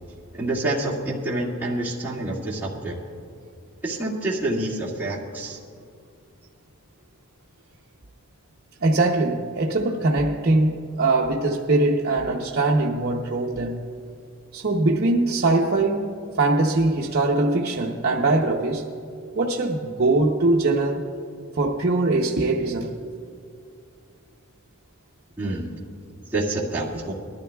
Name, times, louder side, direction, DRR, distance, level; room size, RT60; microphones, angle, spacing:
voice 1, 0.3-2.9 3.8-5.6 25.4-25.7 26.3-27.1, right 2 dB, 10° right, 1.9 m, -27 dB
voice 2, 8.8-13.8 14.5-18.9 19.3-21.1 21.5-23.0, right 2 dB, 50° right, 0.7 m, -22 dB
20.5 x 12.5 x 2.3 m
head